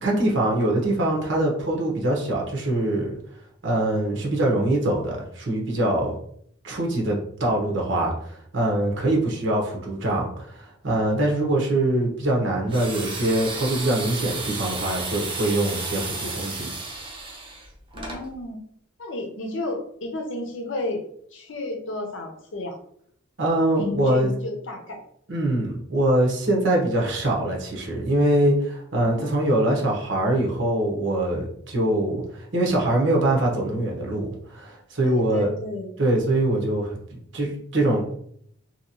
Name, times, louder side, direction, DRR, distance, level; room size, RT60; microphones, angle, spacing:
voice 1, 0.0-3.1 3.6-6.1 6.6-16.7 23.4-24.3 25.3-35.5 36.0-38.1, right 1 dB, 65° right, -1 dB, 0.9 m, -23 dB
sound 1, 12.7-18.2, right 3 dB, 25° right, 0.6 m, -33 dB
voice 2, 17.9-18.6 19.0-21.0 21.3-22.8 23.8-25.0 29.0-29.8 35.0-35.9, left 2 dB, 70° left, 3 dB, 0.7 m, -32 dB
2.9 x 2.8 x 2.8 m, 0.67 s
head